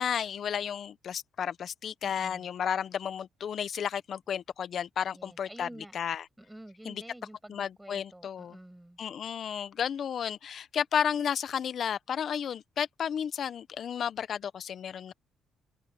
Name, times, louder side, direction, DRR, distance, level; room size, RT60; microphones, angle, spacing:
voice 1, 0.0-5.7 5.9-6.2 6.9-7.0 7.5-8.6 9.0-15.1, left 8 dB, 60° left, 0.7 m, -32 dB
voice 2, 2.0-2.5 5.1-5.9 6.4-9.0, right 1 dB, 10° right, 6.6 m, -49 dB
cardioid pair, 90°, 0 cm